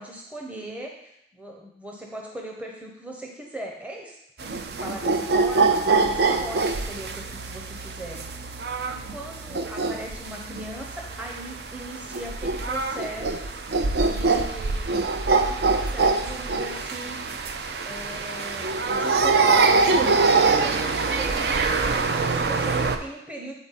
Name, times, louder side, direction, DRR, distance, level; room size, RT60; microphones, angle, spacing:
voice 1, 0.0-8.3 8.8-13.5 14.0-14.9 15.3-17.3 17.8-20.0 20.5-21.4 21.7-23.5, right 1 dB, 10° right, 0 dB, 0.7 m, -39 dB
sound 1, 4.4-23.0, right 4 dB, 65° right, 0.5 m, -24 dB
8.7 x 4.1 x 4.1 m, 0.78 s
head